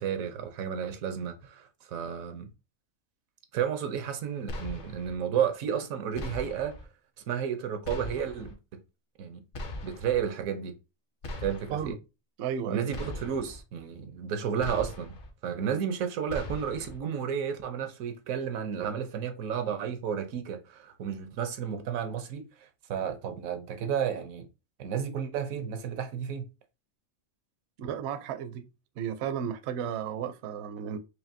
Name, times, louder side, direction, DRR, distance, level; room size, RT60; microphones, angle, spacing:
voice 1, 0.0-2.5 3.5-6.7 7.3-8.6 9.2-9.4 9.8-10.7 11.4-12.0 12.7-15.2 15.4-24.5 24.8-26.5, right 8 dB, 85° right, 1.1 m, -32 dB
sound 1, 4.5-5.2 6.2-6.9 7.8-8.5 9.5-10.2 11.2-11.9 12.9-13.6 14.6-15.3 16.3-17.0, left 1 dB, 50° left, 0.7 m, -39 dB
voice 2, 12.4-12.9 27.8-28.6 29.0-31.0, right 8 dB, 65° right, 0.7 m, -33 dB
4.9 x 2.7 x 2.6 m
omnidirectional pair, 1.4 m